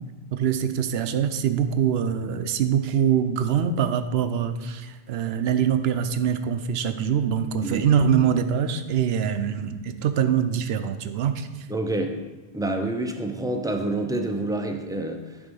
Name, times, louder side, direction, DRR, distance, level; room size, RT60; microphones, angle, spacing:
voice 1, 0.3-11.5, right 8 dB, 70° right, 10 dB, 0.8 m, -24 dB
voice 2, 11.7-12.1 12.5-15.4, right 2 dB, 5° right, 4 dB, 0.3 m, -27 dB
9.8 x 3.5 x 5.4 m, 1.2 s
omnidirectional pair, 1.1 m